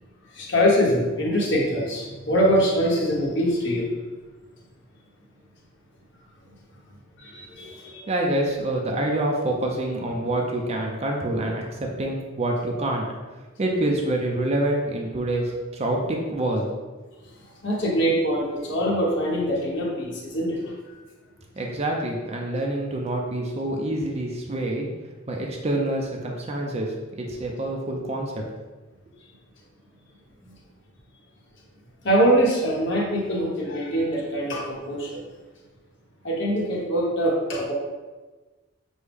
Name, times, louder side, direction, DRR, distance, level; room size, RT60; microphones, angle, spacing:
voice 1, 0.3-3.9 7.2-8.1 17.6-20.8 25.6-25.7 27.3-27.4 30.4-30.5 32.0-35.2 36.2-37.7, equal, 55° left, -4 dB, 1.0 m, -23 dB
voice 2, 8.1-13.1 13.6-16.7 21.6-24.9 25.3-28.4, right 1 dB, 30° right, 0 dB, 0.4 m, -26 dB
6.1 x 2.1 x 3.4 m, 1.2 s
head